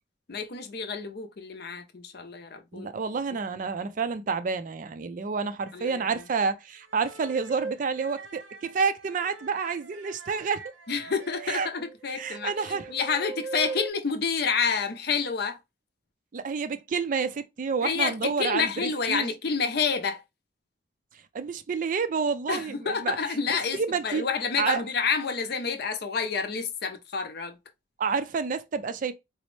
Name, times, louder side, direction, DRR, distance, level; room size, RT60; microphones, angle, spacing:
voice 1, 0.3-2.9 3.5-3.6 5.7-6.0 10.9-15.6 17.8-20.2 22.5-27.6, left 5 dB, 55° left, 0.5 m, -29 dB
voice 2, 2.7-10.7 11.5-11.7 12.2-12.9 16.3-19.3 21.1-23.2 23.5-24.2 24.6-24.8 28.0-29.1, right 5 dB, 45° right, 0.3 m, -29 dB
sound 1, 5.7-6.3 6.9-13.9, right 4 dB, 75° right, 0.8 m, -40 dB
4.1 x 2.0 x 3.1 m
head